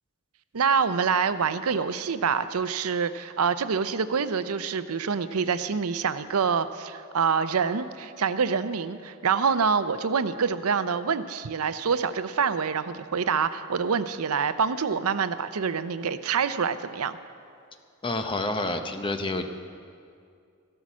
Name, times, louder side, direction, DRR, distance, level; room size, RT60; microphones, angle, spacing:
voice 1, 0.5-17.2, right 6 dB, 80° right, 12 dB, 0.6 m, -26 dB
voice 2, 18.0-19.4, left 2 dB, 25° left, 6 dB, 0.8 m, -28 dB
15.5 x 12.5 x 6.2 m, 2.3 s
head